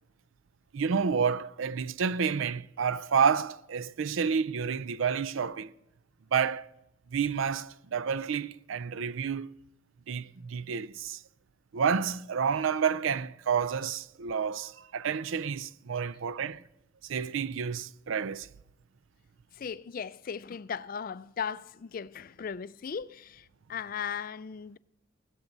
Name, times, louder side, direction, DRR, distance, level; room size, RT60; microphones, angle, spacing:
voice 1, 0.7-5.7 6.3-6.7 7.1-9.5 10.1-11.2 11.7-16.6 17.0-18.5, right 6 dB, 70° right, 0.4 m, -29 dB
voice 2, 19.5-24.8, left 7 dB, 45° left, 0.4 m, -37 dB
16.0 x 13.0 x 4.0 m
head